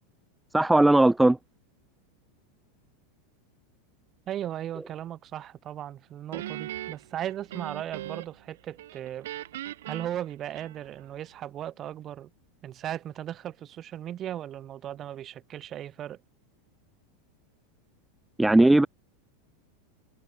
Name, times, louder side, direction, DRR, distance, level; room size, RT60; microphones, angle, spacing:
voice 1, 0.5-1.4 18.4-18.9, right 2 dB, 5° right, 0.3 m, -18 dB
voice 2, 4.3-9.3 9.9-12.3 12.6-16.2, right 11 dB, 35° right, 3.5 m, -37 dB
Guitar, 6.3-8.5 8.8-11.1, right 14 dB, 80° right, 2.2 m, -39 dB
supercardioid pair, 125°, 0 cm